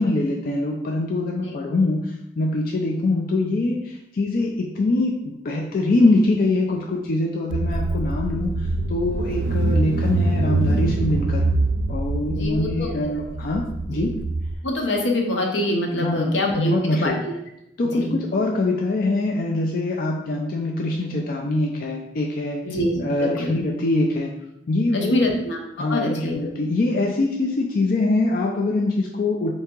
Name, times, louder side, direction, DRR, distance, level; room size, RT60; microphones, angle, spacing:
voice 1, 0.0-8.5 8.9-11.4 11.9-14.2 16.0-17.2 17.8-22.6 23.0-24.3 24.7-25.3 25.8-29.5, left 2 dB, 50° left, 0 dB, 0.4 m, -23 dB
Car / Engine, 7.5-14.5, right 2 dB, 70° right, 0.4 m, -24 dB
voice 2, 12.3-12.9 13.9-14.0 14.6-17.1 17.9-18.2 22.6-23.5 24.9-26.4, left 1 dB, 80° left, 1 dB, 0.8 m, -25 dB
3.4 x 2.8 x 4.4 m, 0.83 s
head